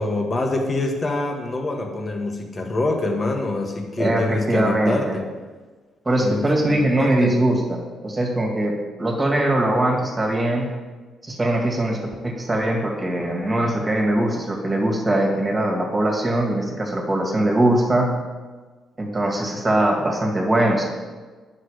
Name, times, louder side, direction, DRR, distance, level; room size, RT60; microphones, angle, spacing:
voice 1, 0.0-5.2 6.2-7.4, left 2 dB, 30° left, 3 dB, 1.5 m, -25 dB
voice 2, 4.0-5.1 6.1-10.7 11.2-18.1 19.0-20.9, right 1 dB, 25° right, 0 dB, 2.1 m, -21 dB
9.5 x 6.5 x 4.9 m, 1.4 s
cardioid pair, 90°, 0 cm